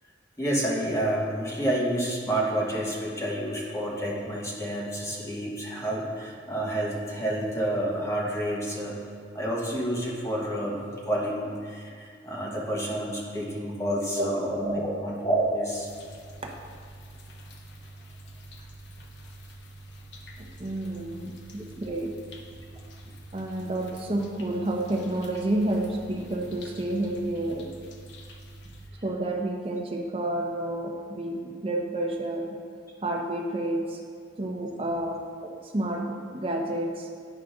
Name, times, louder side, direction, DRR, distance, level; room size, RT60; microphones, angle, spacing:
voice 1, 0.4-9.0 9.3-15.9, right 1 dB, 15° left, -3 dB, 1.0 m, -29 dB
voice 2, 14.0-14.3 14.6-14.8 16.4-16.5 20.4-21.3 21.8-22.1 23.3-27.7 29.0-32.6 33.0-34.0 34.4-35.2 35.7-37.1, right 1 dB, 30° right, 1 dB, 0.7 m, -30 dB
sound 1, 15.7-28.9, right 1 dB, 70° left, 0.7 m, -46 dB
9.0 x 4.9 x 3.7 m, 2.1 s
head